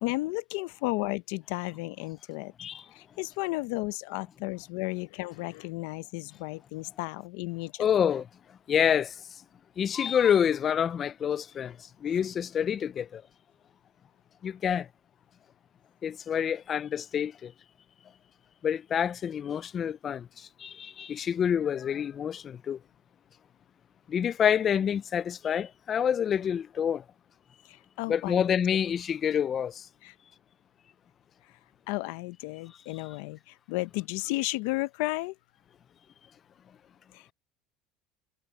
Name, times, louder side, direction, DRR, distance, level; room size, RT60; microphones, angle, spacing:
voice 1, 0.0-2.5 2.9-7.7 27.7-28.5 30.0-30.1 31.9-35.3 37.1-37.3, left 22 dB, 70° left, 0.7 m, -33 dB
voice 2, 7.8-8.3 8.7-9.1 9.8-11.7 12.0-13.2 14.4-14.9 16.0-17.5 18.6-20.3 20.6-22.8 24.1-27.0 28.1-29.7, left 8 dB, 25° left, 0.3 m, -27 dB
cardioid pair, 165°, 0 cm